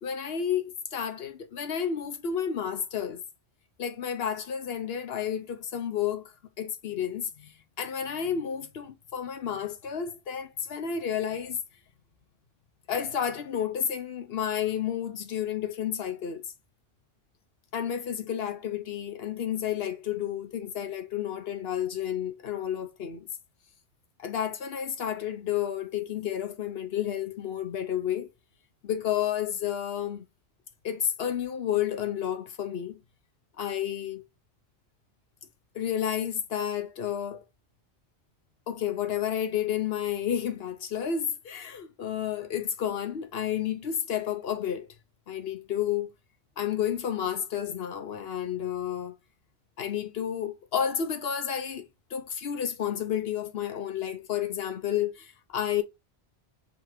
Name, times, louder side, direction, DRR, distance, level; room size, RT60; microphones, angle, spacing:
voice 1, 0.0-3.2 3.8-11.6 12.9-16.4 17.7-23.3 24.2-28.3 28.8-30.2 30.8-33.0 33.6-34.3 35.7-37.4 38.7-44.9 45.3-46.1 46.6-49.1 49.8-55.8, left 9 dB, 65° left, 1.0 m, -31 dB
3.6 x 3.5 x 3.1 m
omnidirectional pair, 1.1 m